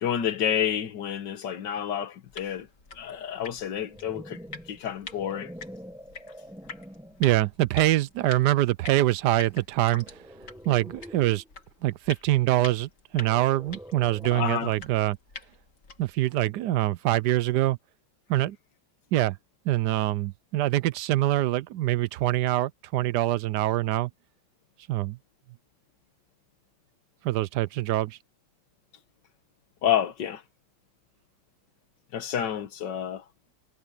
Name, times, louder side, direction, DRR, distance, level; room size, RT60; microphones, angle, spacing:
voice 1, 0.0-2.7 3.0-4.4 4.7-5.5 14.3-14.7 29.8-30.4 32.1-33.2, left 9 dB, 85° left, 1.9 m, -29 dB
sound 1, 2.3-16.2, left 4 dB, 45° left, 2.4 m, -46 dB
sound 2, 3.6-7.3 7.9-8.2 9.9-11.5 13.1-14.6, equal, ahead, 1.6 m, -45 dB
voice 2, 7.2-10.2 10.7-11.4 11.8-15.2 16.0-17.8 18.3-18.6 19.1-19.4 19.6-24.1 24.9-25.2 27.2-28.2, right 15 dB, 75° right, 1.2 m, -24 dB
omnidirectional pair, 1.9 m